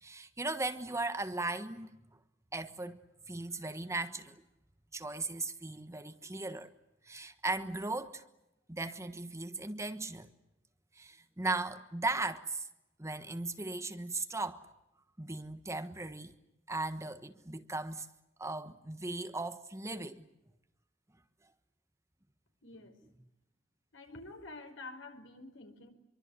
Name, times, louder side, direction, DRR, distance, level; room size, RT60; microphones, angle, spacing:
voice 1, 0.0-1.9 2.5-3.0 3.3-4.4 4.9-6.7 7.0-8.2 8.7-10.3 10.9-12.7 13.0-14.7 15.2-16.3 16.7-18.1 18.4-20.2, right 2 dB, 15° right, 1.3 m, -37 dB
voice 2, 22.6-23.0 23.9-25.9, left 2 dB, 75° left, 5.2 m, -48 dB
26.5 x 24.0 x 8.3 m
head